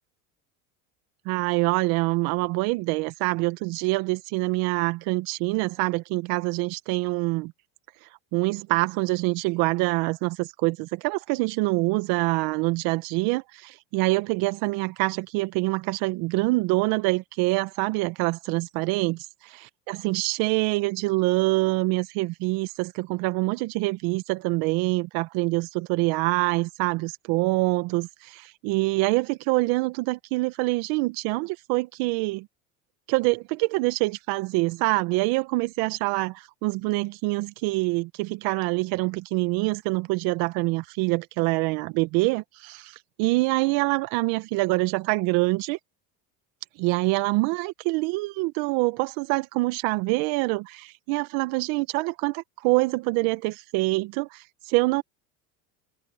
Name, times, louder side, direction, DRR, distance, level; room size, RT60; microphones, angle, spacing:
voice 1, 1.2-7.5 8.3-19.3 19.9-32.5 33.1-45.8 46.8-55.0, right 23 dB, 65° right, 1.4 m, -25 dB
supercardioid pair, 110°, 39 cm